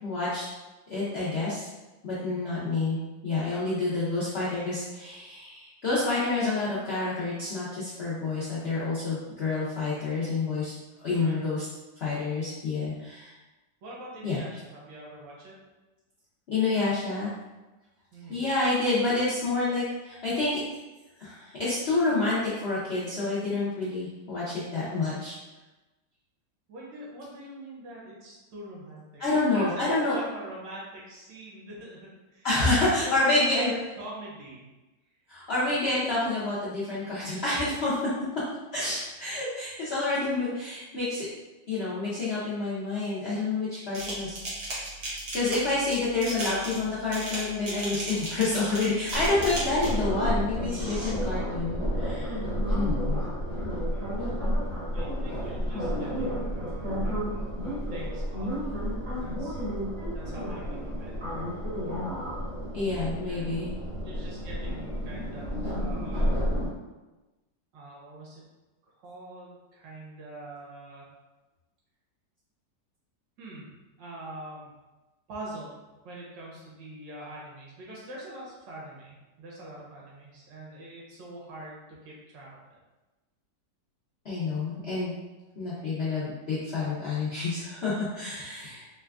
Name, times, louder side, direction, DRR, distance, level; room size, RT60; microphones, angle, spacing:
voice 1, 0.0-0.4 0.9-1.7 2.0-3.0 3.2-10.7 11.0-11.7 12.0-13.3 14.2-14.4 16.5-17.3 18.3-20.6 21.2-25.4 29.2-30.2 32.4-33.7 35.3-38.0 38.7-41.3 41.7-44.4 45.3-52.4 52.7-53.2 62.7-63.7 84.2-85.1 85.6-88.9, left 3 dB, 65° left, -10 dB, 0.6 m, -28 dB
voice 2, 2.1-2.4 11.1-11.5 13.8-15.6 18.1-18.4 26.7-29.2 29.5-32.5 32.8-34.6 54.9-57.6 57.9-58.5 59.2-59.6 60.1-61.1 63.2-63.5 64.0-66.4 67.7-68.4 69.0-71.1 73.4-73.7 74.0-74.7 75.3-75.8 76.0-82.8, right 1 dB, 85° right, -5 dB, 1.6 m, -43 dB
sound 1, 43.9-50.1 50.6-51.1, right 1 dB, 60° right, 1.4 m, -36 dB
sound 2, 49.1-66.7, equal, 40° right, 1.0 m, -31 dB
4.0 x 2.2 x 2.3 m, 1.1 s
omnidirectional pair, 1.9 m